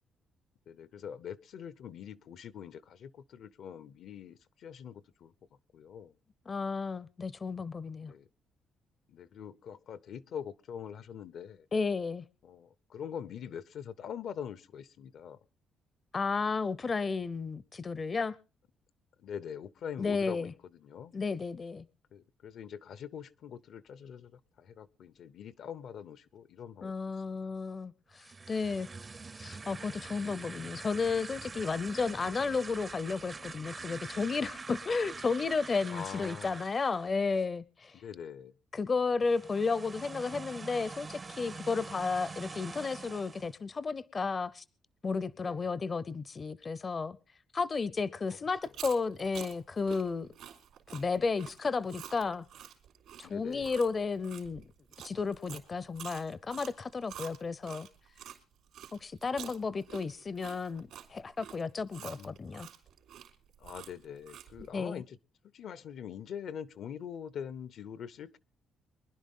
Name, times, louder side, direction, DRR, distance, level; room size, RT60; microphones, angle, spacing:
voice 1, 0.7-5.3 5.7-6.1 8.0-8.3 9.1-11.7 12.4-15.4 19.2-21.1 22.1-26.9 27.3-27.4 35.9-36.6 37.9-38.5 45.5-45.7 48.3-48.4 53.2-53.7 62.0-62.5 63.6-65.2 65.4-68.4, left 8 dB, 65° left, 0.8 m, -44 dB
voice 2, 6.5-8.1 11.7-12.2 16.1-18.4 20.0-20.5 21.1-21.9 26.8-28.9 29.4-38.0 38.7-44.6 45.0-47.2 47.5-50.3 50.9-52.5 53.2-54.6 55.0-57.9 58.9-62.7 64.7-65.0, left 4 dB, 35° left, 0.6 m, -33 dB
sound 1, 28.1-37.1 39.2-43.5, right 4 dB, 30° right, 0.6 m, -45 dB
Chewing mastication, 48.6-58.4 58.7-64.7, right 10 dB, 80° right, 3.3 m, -48 dB
24.0 x 11.0 x 3.7 m
cardioid pair, 105°, 0 cm